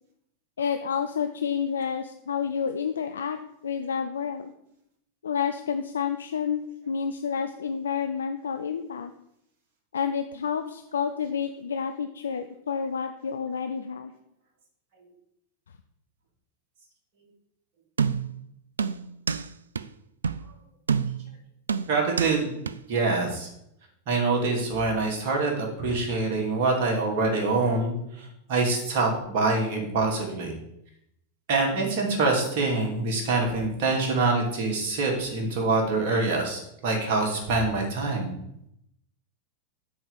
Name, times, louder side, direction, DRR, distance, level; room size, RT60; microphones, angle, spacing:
voice 1, 0.6-4.5 5.2-9.1 9.9-14.1, left 7 dB, 70° left, 7 dB, 0.5 m, -29 dB
sound 1, 18.0-18.4 18.8-19.5 19.8-19.9 20.2-20.4 20.9-21.3 21.7-22.4 22.7-22.8, right 6 dB, 70° right, 0.4 m, -27 dB
voice 2, 21.9-22.5 22.9-23.5 24.1-30.5 31.5-38.3, right 3 dB, 45° right, 0 dB, 2.8 m, -25 dB
8.7 x 4.7 x 7.1 m, 0.77 s
figure-of-eight pair, 90°, 0 cm